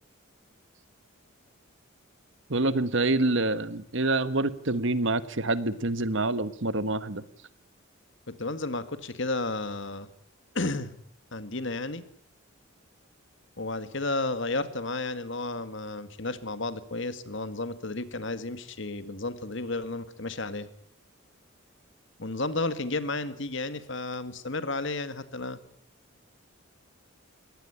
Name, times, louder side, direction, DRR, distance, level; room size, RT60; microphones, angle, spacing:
voice 1, 2.5-7.2, right 2 dB, 60° right, 14 dB, 1.4 m, -26 dB
voice 2, 8.3-10.1 10.5-11.0 11.3-12.1 13.6-20.7 22.2-25.6, left 2 dB, 55° left, 12 dB, 1.9 m, -32 dB
22.0 x 18.0 x 9.9 m, 0.64 s
head